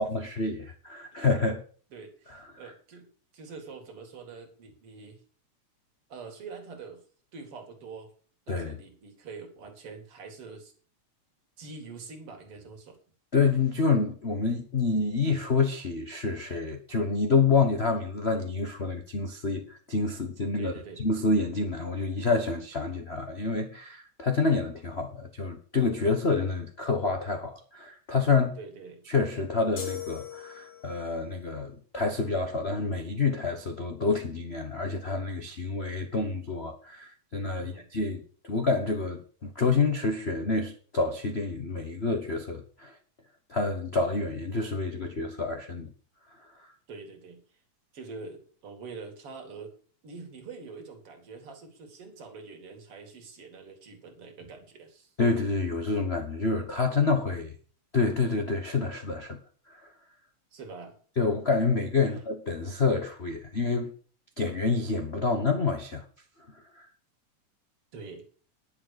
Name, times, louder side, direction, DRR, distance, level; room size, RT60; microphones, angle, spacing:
voice 1, 0.0-1.6 2.3-2.7 8.5-8.8 13.3-20.7 21.0-28.6 29.1-43.0 43.5-45.9 55.2-57.5 57.9-59.4 59.7-59.9 61.2-63.9 64.4-66.0 66.5-66.9, left 4 dB, 80° left, 0.5 m, -28 dB
voice 2, 1.9-3.1 3.3-5.2 6.1-7.0 7.3-8.1 8.5-10.7 11.6-13.0 20.6-21.0 28.6-29.1 37.6-37.9 46.9-47.4 47.9-49.7 50.0-55.1 60.5-61.0 62.0-62.2 67.9-68.3, right 4 dB, 50° right, 3.1 m, -45 dB
sound 1, 29.8-31.1, left 8 dB, 60° left, 3.3 m, -39 dB
10.5 x 6.9 x 6.6 m
omnidirectional pair, 3.3 m